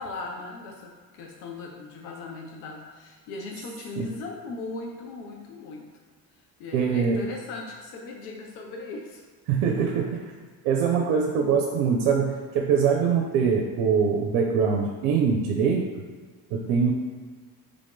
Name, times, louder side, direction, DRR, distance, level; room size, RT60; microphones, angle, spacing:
voice 1, 0.0-5.9 6.6-9.2, left 3 dB, 80° left, 0 dB, 0.6 m, -38 dB
voice 2, 6.7-7.3 9.5-10.3 10.6-15.9 16.5-16.9, right 6 dB, 75° right, 1 dB, 0.6 m, -23 dB
3.5 x 2.5 x 3.6 m, 1.5 s
hypercardioid pair, 65°, 44 cm